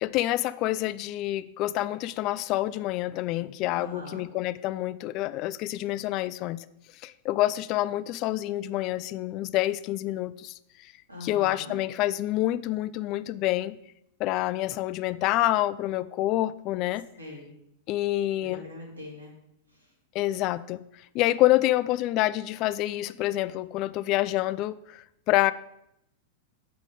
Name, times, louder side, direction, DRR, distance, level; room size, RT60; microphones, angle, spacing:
voice 1, 0.0-6.6 7.0-10.5 10.8-10.9 11.2-13.8 14.2-17.0 17.9-18.6 20.1-20.8 21.1-25.5, left 15 dB, 45° left, 17 dB, 0.3 m, -27 dB
voice 2, 3.7-4.2 11.1-11.8 17.2-17.5 18.4-19.3 19.7-19.9, left 2 dB, 90° right, -1 dB, 2.2 m, -42 dB
6.6 x 5.0 x 5.0 m, 0.80 s
figure-of-eight pair, 95°, 0 cm